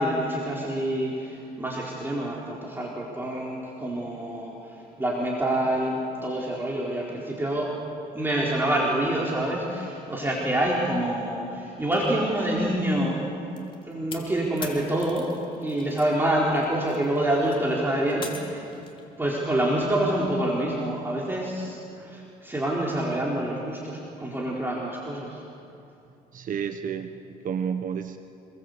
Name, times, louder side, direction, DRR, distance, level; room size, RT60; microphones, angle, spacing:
voice 1, 0.0-7.7 8.1-13.2 13.8-15.3 15.6-18.7 19.2-25.4, right 1 dB, 10° right, -4 dB, 4.2 m, -27 dB
sound 1, 13.6-16.2 16.5-19.0, left 4 dB, 30° left, 3.5 m, -42 dB
voice 2, 26.3-28.2, right 7 dB, 50° right, 7 dB, 1.3 m, -31 dB
27.0 x 21.5 x 8.1 m, 2.7 s
cardioid pair, 110°, 17 cm